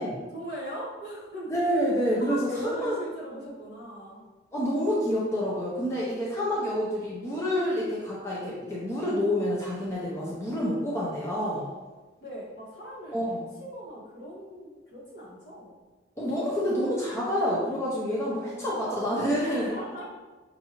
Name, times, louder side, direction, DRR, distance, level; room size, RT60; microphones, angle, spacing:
voice 1, 0.3-1.5 2.1-4.2 11.3-11.8 12.2-15.7 18.4-20.1, equal, 65° left, -7 dB, 1.5 m, -40 dB
voice 2, 1.5-3.0 4.5-11.6 13.1-13.5 16.2-19.8, equal, 15° left, -6 dB, 0.6 m, -28 dB
5.5 x 2.6 x 2.9 m, 1.2 s
head